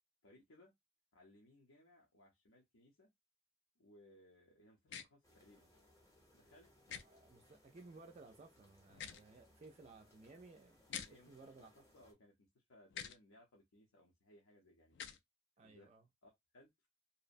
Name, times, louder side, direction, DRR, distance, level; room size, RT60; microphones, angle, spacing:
voice 1, 0.2-0.7 1.1-3.1 3.8-5.7 6.3-6.7 11.1-11.3 11.6-15.0 15.6-15.9 16.2-16.9, left 1 dB, 80° left, 0.7 m, -65 dB
sound 1, 4.9-5.1 6.9-7.0 8.9-9.2 10.9-11.1 12.9-13.2 14.9-15.2, left 8 dB, 55° left, 0.3 m, -46 dB
sound 2, 5.2-12.1, left 1 dB, 15° left, 0.7 m, -69 dB
voice 2, 6.9-11.7 15.6-16.1, right 3 dB, 30° right, 0.3 m, -59 dB
2.7 x 2.0 x 2.5 m
head